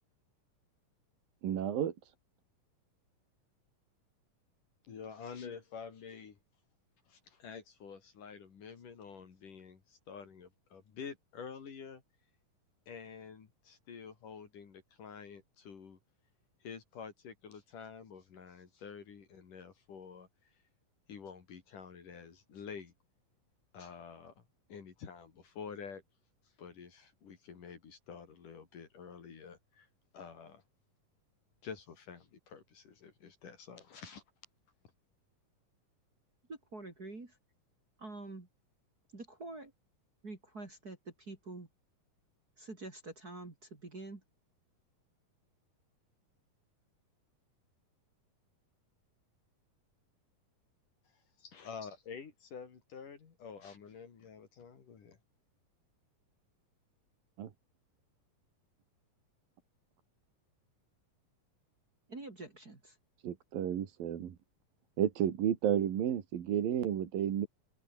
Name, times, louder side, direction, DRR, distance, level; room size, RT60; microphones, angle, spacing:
voice 1, 1.4-1.9 57.4-57.5 63.2-64.4 65.0-67.5, right 9 dB, 80° right, 3.9 m, -32 dB
voice 2, 4.8-6.4 7.1-12.0 12.9-16.0 16.6-20.3 21.1-22.9 23.7-24.4 24.7-26.0 26.6-29.9 30.1-30.6 31.6-34.2 51.4-55.2, left 6 dB, 65° left, 4.7 m, -48 dB
voice 3, 36.5-37.4 38.0-38.5 39.1-39.7 40.2-41.7 42.6-44.2 62.1-63.0, right 2 dB, 25° right, 3.5 m, -46 dB
omnidirectional pair, 4.0 m